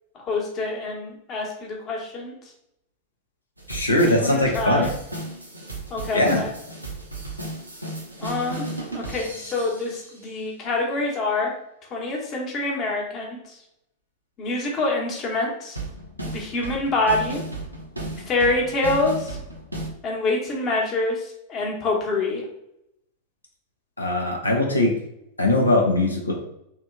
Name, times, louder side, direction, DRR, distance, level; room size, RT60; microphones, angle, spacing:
voice 1, 0.1-2.3 4.0-4.9 5.9-6.5 8.2-8.7 8.9-11.5 11.9-13.5 14.4-15.8 16.3-17.4 18.3-19.4 20.0-22.4, left 2 dB, 30° left, -1 dB, 1.2 m, -26 dB
sound 1, 3.6-10.2 15.7-19.9, right 1 dB, 90° right, 0.8 m, -35 dB
voice 2, 3.7-4.9 6.1-6.4 24.0-24.9 25.4-26.3, left 1 dB, 80° left, 1 dB, 0.8 m, -20 dB
3.5 x 2.9 x 3.8 m, 0.81 s
figure-of-eight pair, 90°, 0 cm